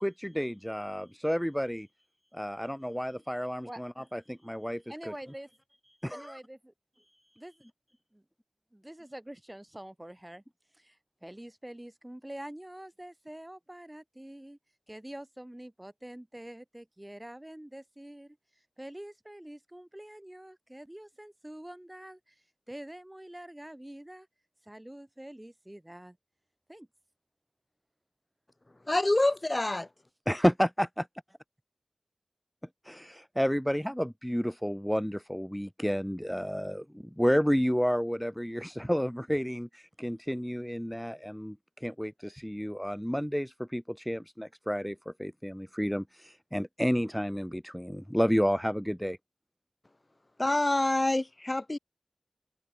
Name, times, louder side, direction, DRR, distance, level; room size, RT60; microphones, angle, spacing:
voice 1, 0.0-1.9 2.3-5.1 6.0-6.4 7.0-7.4 30.3-31.1 32.9-49.2, equal, 5° left, 0.8 m, -31 dB
voice 2, 4.9-5.5 6.1-6.7 7.4-7.7 8.1-8.2 8.7-10.4 10.7-14.6 14.9-18.4 18.8-22.3 22.7-24.3 24.6-26.2 26.7-26.9, right 1 dB, 20° right, 4.9 m, -46 dB
voice 3, 28.9-29.9 50.4-51.8, left 2 dB, 45° left, 1.1 m, -26 dB
open air
wide cardioid pair, 45°, 0 cm